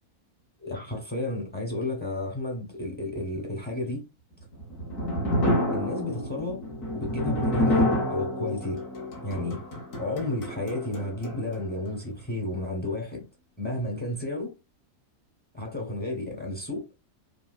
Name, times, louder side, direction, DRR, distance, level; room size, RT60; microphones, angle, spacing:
voice 1, 0.6-4.0 5.7-6.6 6.9-8.8 9.2-9.6 10.0-13.2 13.6-14.5 15.5-16.8, left 1 dB, 10° left, 0.5 m, -32 dB
sound 1, 4.4-11.6, left 1 dB, 60° left, 1.3 m, -28 dB
3.3 x 2.3 x 2.4 m
omnidirectional pair, 1.6 m